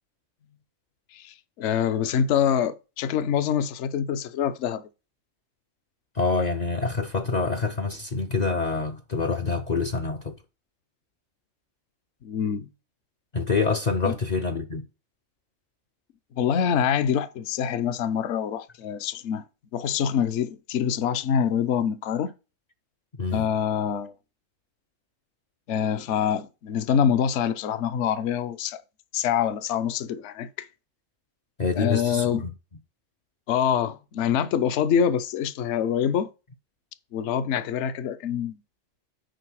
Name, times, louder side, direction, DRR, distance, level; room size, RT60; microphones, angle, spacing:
voice 1, 1.1-4.9 12.2-12.7 14.0-14.1 16.3-19.4 19.7-22.3 23.3-24.1 25.7-28.8 29.1-30.7 31.8-32.5 33.5-36.3 37.1-38.6, left 8 dB, 65° left, 0.9 m, -25 dB
voice 2, 6.1-10.4 13.3-14.8 23.2-23.4 31.6-32.5, left 4 dB, 50° left, 0.5 m, -26 dB
6.6 x 4.7 x 6.1 m
omnidirectional pair, 1.4 m